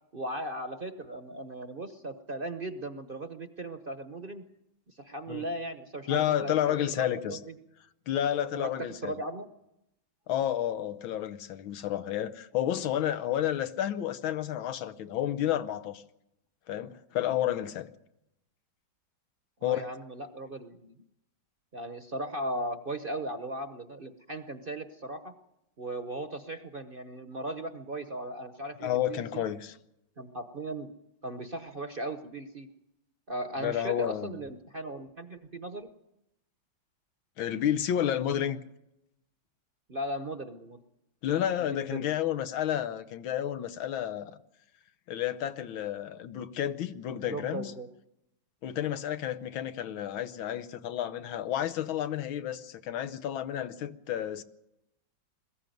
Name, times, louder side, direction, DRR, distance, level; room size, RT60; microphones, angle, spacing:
voice 1, 0.1-4.4 4.9-7.5 8.6-8.7 9.0-9.5 19.6-21.0 21.7-25.3 25.8-29.4 30.2-30.9 31.2-32.7 33.3-35.9 39.9-40.8 41.6-42.1 47.2-47.9, right 1 dB, 35° right, 0.9 m, -37 dB
voice 2, 6.1-7.4 8.1-9.1 10.3-16.0 16.7-17.9 19.6-19.9 28.8-29.7 33.6-34.4 37.4-38.6 41.2-44.4 45.1-47.7 48.6-54.4, left 11 dB, 90° left, 1.7 m, -31 dB
21.5 x 15.0 x 9.2 m
omnidirectional pair, 2.1 m